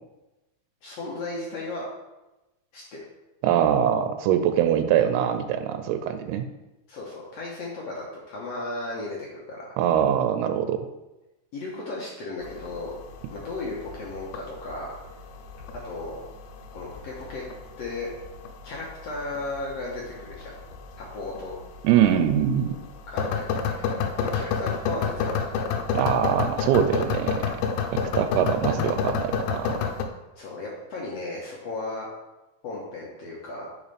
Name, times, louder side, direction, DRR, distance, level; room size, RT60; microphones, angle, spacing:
voice 1, 0.8-1.9 2.7-3.0 6.9-9.7 11.5-12.9 13.3-15.0 15.8-16.2 16.7-17.4 17.8-18.1 18.6-20.6 21.0-21.5 23.1-25.6 30.4-32.1 32.6-33.7, left 2 dB, 70° left, -4 dB, 1.6 m, -35 dB
voice 2, 3.4-6.5 9.8-10.9 21.8-22.8 25.9-27.5 27.9-29.8, right 9 dB, 90° right, 9 dB, 2.5 m, -23 dB
sound 1, 12.4-30.0, left 6 dB, 90° left, 2.6 m, -31 dB
9.5 x 5.3 x 3.3 m, 1.0 s
omnidirectional pair, 4.4 m